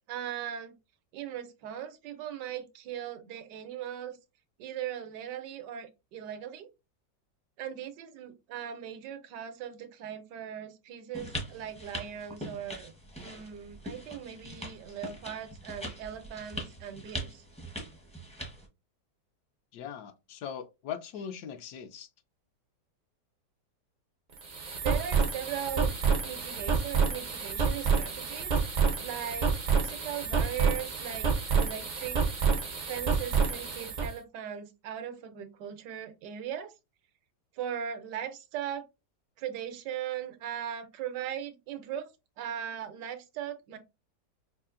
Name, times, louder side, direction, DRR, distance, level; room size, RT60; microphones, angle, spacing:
voice 1, 0.1-0.7 1.1-4.2 4.6-6.7 7.6-12.9 13.2-17.4 24.8-25.9 26.2-31.3 31.6-32.2 32.9-36.7 37.5-38.8 39.4-42.1 42.4-43.8, right 9 dB, 85° right, 1.3 m, -39 dB
sound 1, 11.1-18.7, equal, 10° left, 0.4 m, -42 dB
voice 2, 19.7-22.1, left 8 dB, 75° left, 1.0 m, -40 dB
sound 2, 24.3-34.1, right 5 dB, 55° right, 0.5 m, -28 dB
5.2 x 2.4 x 2.5 m
omnidirectional pair, 1.8 m